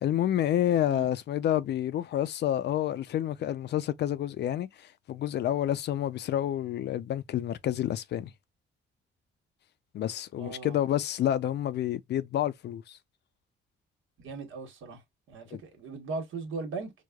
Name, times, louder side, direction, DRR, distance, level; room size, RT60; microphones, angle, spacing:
voice 1, 0.0-4.7 5.1-8.3 9.9-13.0 15.5-15.6, left 11 dB, 60° left, 0.4 m, -29 dB
voice 2, 10.4-10.8 14.2-15.0 15.3-16.9, right 3 dB, 80° right, 1.2 m, -38 dB
4.7 x 2.1 x 2.3 m
cardioid pair, 90°, 20 cm